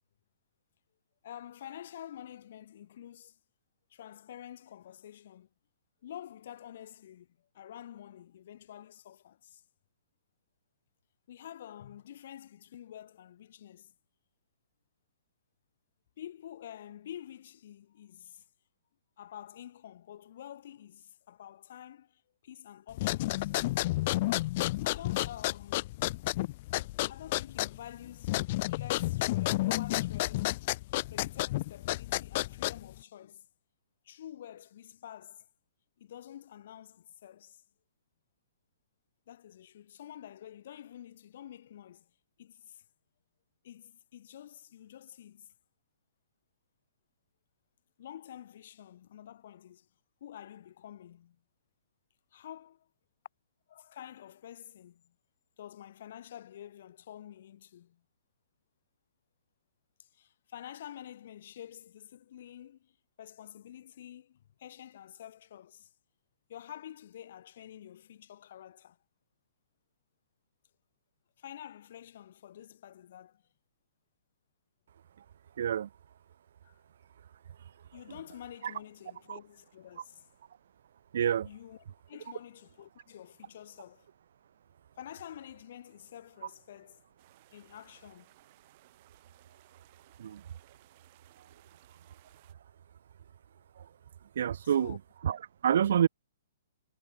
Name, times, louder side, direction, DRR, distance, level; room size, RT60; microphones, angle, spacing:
voice 1, 1.2-3.4 3.9-5.5 6.0-7.3 7.5-9.6 11.3-13.9 16.2-18.4 19.2-23.5 24.7-26.0 27.1-30.7 31.1-33.5 34.0-35.5 36.0-37.6 39.3-42.1 42.4-42.8 43.6-45.5 48.0-49.9 50.2-51.4 52.3-52.9 53.7-55.1 55.6-58.0 60.0-65.9 66.5-69.0 71.4-73.4 76.6-76.8 77.9-80.3 81.4-84.1 85.0-87.0 87.5-88.3 94.6-95.0, left 11 dB, 55° left, 4.1 m, -48 dB
sound 1, 22.9-33.0, left 18 dB, 35° left, 0.5 m, -31 dB
voice 2, 75.6-75.9 79.3-79.4 81.1-81.5 90.2-90.4 93.8-93.9 94.4-95.0 95.2-96.1, right 9 dB, 60° right, 0.6 m, -28 dB
sound 2, 87.2-92.5, right 20 dB, 35° right, 6.2 m, -63 dB
hypercardioid pair, 160°, 0 cm